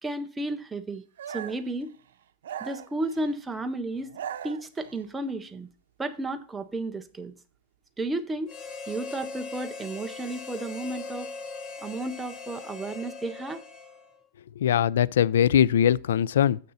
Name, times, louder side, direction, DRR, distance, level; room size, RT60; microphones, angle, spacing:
voice 1, 0.0-1.9 2.6-4.1 4.4-5.7 6.0-7.3 8.0-8.5 8.9-11.3 11.8-13.6, right 2 dB, 5° right, 0.5 m, -33 dB
sound 1, 1.2-1.7 2.4-3.4 4.0-5.0, right 9 dB, 90° right, 0.6 m, -39 dB
Harmonica, 8.5-14.3, left 4 dB, 20° left, 0.8 m, -40 dB
voice 2, 14.6-16.6, left 9 dB, 80° left, 0.3 m, -21 dB
6.7 x 6.6 x 4.2 m
supercardioid pair, 175°, 0 cm